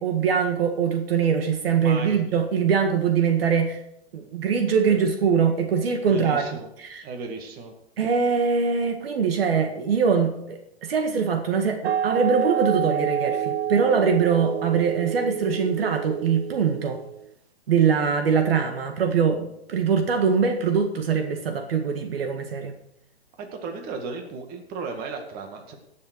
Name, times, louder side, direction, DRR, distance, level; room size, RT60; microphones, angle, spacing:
voice 1, 0.0-3.8 4.1-7.0 8.0-17.0 17.7-22.8, right 6 dB, 65° right, 6 dB, 1.8 m, -23 dB
voice 2, 1.8-2.2 4.9-5.0 6.1-6.7 7.0-7.7 23.4-25.7, right 4 dB, 30° right, 4 dB, 2.1 m, -34 dB
sound 1, 11.8-17.3, right 10 dB, 85° right, 0.5 m, -28 dB
17.5 x 7.1 x 4.7 m, 0.77 s
hypercardioid pair, 130°, 31 cm